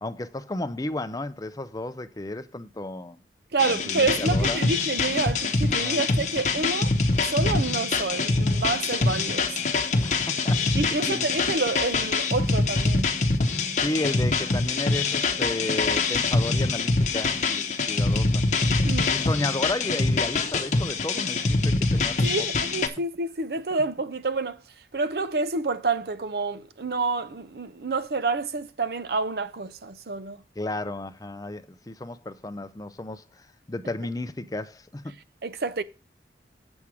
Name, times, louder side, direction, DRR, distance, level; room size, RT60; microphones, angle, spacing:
voice 1, 0.0-3.2 3.7-4.6 5.8-6.0 10.0-10.8 11.0-11.2 13.7-18.4 19.1-22.5 30.6-33.2 33.7-35.1, left 2 dB, 20° left, 0.5 m, -33 dB
voice 2, 3.5-6.9 7.3-9.5 10.8-13.1 18.8-19.1 22.2-24.6 24.9-30.4 35.4-35.8, right 3 dB, 60° right, 0.6 m, -28 dB
sound 1, 3.6-22.9, left 3 dB, 40° left, 0.9 m, -24 dB
7.4 x 7.1 x 4.9 m
head